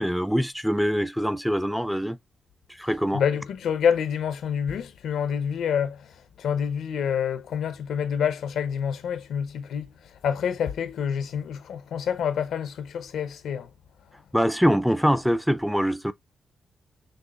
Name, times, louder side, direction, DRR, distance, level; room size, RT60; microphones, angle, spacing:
voice 1, 0.0-2.2 2.8-3.2 14.3-16.1, equal, ahead, 0.4 m, -23 dB
voice 2, 3.1-6.0 6.4-9.9 10.2-13.7, left 8 dB, 85° left, 0.7 m, -27 dB
6.4 x 2.5 x 2.4 m
cardioid pair, 100°, 0 cm